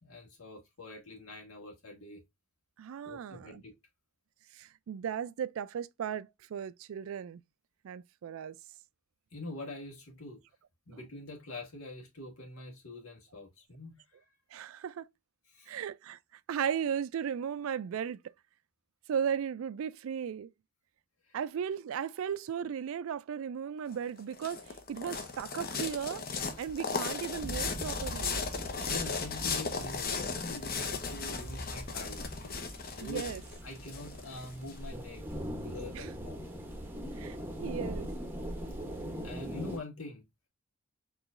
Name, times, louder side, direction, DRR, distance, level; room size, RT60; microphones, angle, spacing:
voice 1, 0.0-2.2 3.0-3.7 9.3-10.4 10.9-14.0 15.5-15.7 21.3-21.4 28.6-32.2 32.9-33.2 33.6-35.2 35.6-36.5 39.2-40.2, left 2 dB, 90° left, 1.6 m, -45 dB
voice 2, 2.8-3.6 4.5-7.4 7.8-8.6 10.9-11.0 14.5-15.1 15.7-16.2 16.5-18.3 19.1-20.5 21.3-26.3 26.6-28.4 33.0-33.4 35.9-36.1 37.2-38.1, right 8 dB, 75° right, 0.3 m, -36 dB
sound 1, 23.9-34.7, left 5 dB, 45° left, 0.7 m, -36 dB
sound 2, 27.4-39.8, equal, 10° right, 0.8 m, -41 dB
4.6 x 3.1 x 2.4 m
head